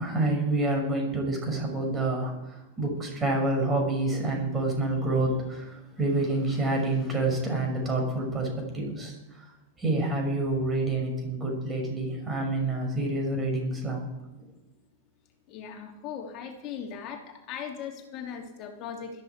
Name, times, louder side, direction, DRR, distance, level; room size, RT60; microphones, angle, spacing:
voice 1, 0.0-8.5 8.7-9.5 9.8-14.1 14.4-14.5, right 2 dB, 20° right, 2 dB, 6.4 m, -28 dB
voice 2, 15.5-19.2, left 7 dB, 35° left, 3 dB, 2.9 m, -39 dB
21.0 x 13.5 x 4.7 m, 0.98 s
figure-of-eight pair, 90°, 0 cm